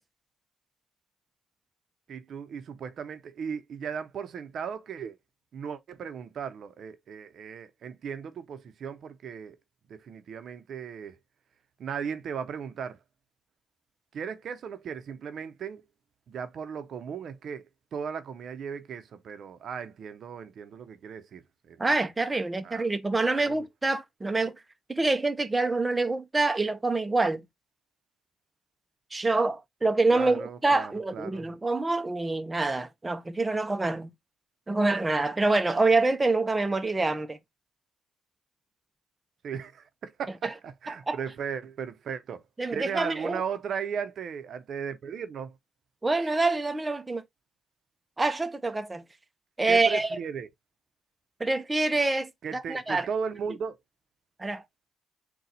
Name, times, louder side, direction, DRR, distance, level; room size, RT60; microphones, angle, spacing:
voice 1, 2.1-5.2 5.5-9.6 9.9-11.2 11.8-13.0 14.1-15.8 16.3-17.6 17.9-21.8 22.6-22.9 23.3-23.6 30.1-31.5 39.4-42.4 42.7-45.5 46.2-46.3 49.7-50.5 52.4-53.8, right 7 dB, 60° right, 0.6 m, -36 dB
voice 2, 21.8-24.5 24.9-27.4 29.1-34.1 34.7-37.4 41.1-41.2 42.6-43.4 46.0-47.2 48.2-49.0 49.6-50.2 51.4-53.1 54.4-54.6, right 3 dB, 20° right, 0.6 m, -26 dB
4.0 x 2.3 x 4.1 m
cardioid pair, 90°, 0 cm